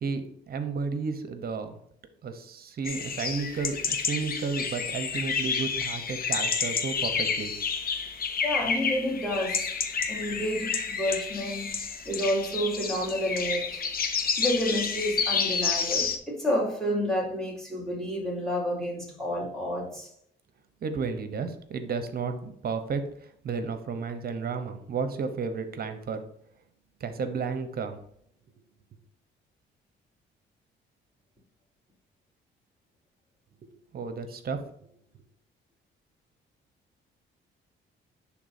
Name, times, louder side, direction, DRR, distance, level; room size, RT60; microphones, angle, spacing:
voice 1, 0.0-1.8 2.2-7.5 20.8-26.2 27.0-28.0 33.6-34.6, right 5 dB, 50° right, 9 dB, 0.9 m, -32 dB
sound 1, 2.8-16.2, left 5 dB, 50° left, 0.8 m, -30 dB
voice 2, 8.4-9.6 10.1-11.7 12.0-13.9 14.4-20.1, equal, ahead, -4 dB, 2.7 m, -30 dB
10.5 x 3.6 x 2.7 m, 0.68 s
cardioid pair, 90°, 20 cm